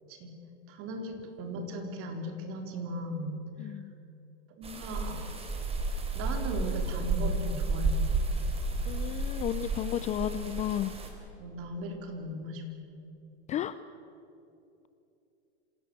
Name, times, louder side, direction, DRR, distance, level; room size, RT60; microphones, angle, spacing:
voice 1, 0.7-3.7 4.6-5.3 6.1-8.1 11.4-12.6, right 1 dB, 40° right, 4 dB, 3.9 m, -37 dB
voice 2, 3.6-3.9 8.8-10.9 13.5-13.8, left 11 dB, 20° left, 14 dB, 0.4 m, -33 dB
sound 1, 4.6-11.1, right 2 dB, 15° right, 3.7 m, -32 dB
26.5 x 17.5 x 7.9 m, 2.8 s
supercardioid pair, 140°, 33 cm